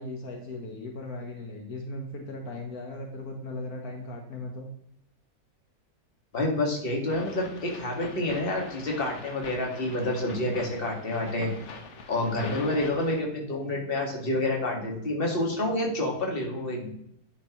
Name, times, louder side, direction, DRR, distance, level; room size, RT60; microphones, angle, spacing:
voice 1, 0.0-4.7 12.3-12.8, left 2 dB, 70° left, 2 dB, 1.6 m, -38 dB
voice 2, 6.3-11.5 12.1-16.9, left 1 dB, 35° left, 0 dB, 1.8 m, -28 dB
sound 1, 7.1-13.2, left 4 dB, 55° left, 1.1 m, -43 dB
9.6 x 5.9 x 3.0 m, 0.76 s
omnidirectional pair, 1.6 m